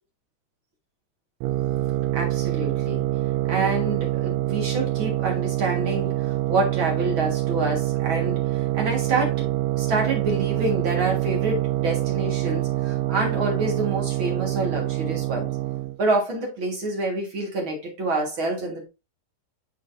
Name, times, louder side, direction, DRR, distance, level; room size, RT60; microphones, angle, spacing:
sound 1, 1.4-16.0, right 16 dB, 90° right, 2.6 m, -25 dB
voice 1, 2.1-3.1 3.5-9.5 9.7-15.5 16.0-18.9, right 2 dB, 45° right, 1.7 m, -27 dB
11.0 x 3.9 x 2.6 m
omnidirectional pair, 4.5 m